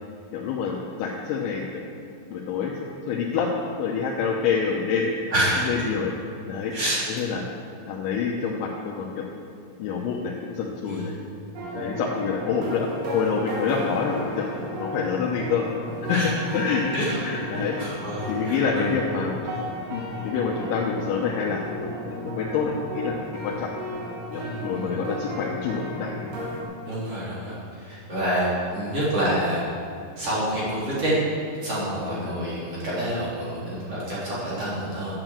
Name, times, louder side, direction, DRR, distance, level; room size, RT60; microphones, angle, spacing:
voice 1, 0.3-1.8 2.3-2.7 3.1-3.5 3.8-5.1 5.6-6.1 6.5-6.7 7.2-7.4 7.9-9.2 9.8-11.1 11.7-14.5 14.8-15.7 16.1-17.8 18.3-19.4 19.9-23.1 23.4-23.7 24.3-26.1 26.6-26.7 32.2-32.4, left 6 dB, 80° left, -2 dB, 3.2 m, -27 dB
voice 2, 5.3-5.9 6.7-7.0 10.9-11.2 16.1-16.3 16.9-17.2 17.8-18.9 24.3-24.9 26.8-27.6 27.8-29.6 30.2-31.2 31.6-35.2, right 1 dB, 35° right, -9 dB, 4.2 m, -27 dB
sound 1, 11.6-26.6, equal, 75° right, 4.7 m, -34 dB
11.0 x 9.0 x 7.6 m, 2.4 s
omnidirectional pair, 5.6 m